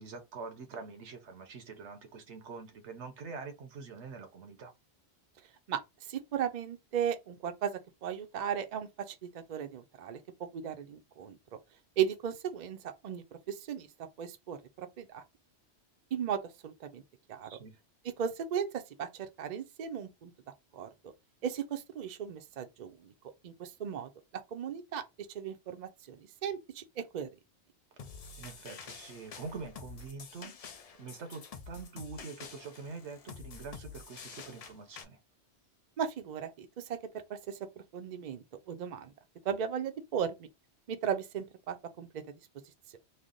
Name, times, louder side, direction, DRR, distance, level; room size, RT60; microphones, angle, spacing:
voice 1, 0.0-4.7 17.4-17.8 28.4-30.5 31.0-35.2, right 4 dB, 85° right, 1.1 m, -45 dB
voice 2, 5.7-11.4 12.0-13.9 14.2-15.2 16.1-17.0 17.3-17.5 18.2-20.3 20.7-20.9 21.4-23.1 23.4-24.1 24.5-25.0 25.3-27.3 36.0-37.0 37.3-39.1 39.4-40.5 40.9-42.3, right 8 dB, 50° right, 0.6 m, -36 dB
sound 1, 28.0-35.0, left 5 dB, 55° left, 0.4 m, -48 dB
3.2 x 2.0 x 3.8 m
omnidirectional pair, 1.1 m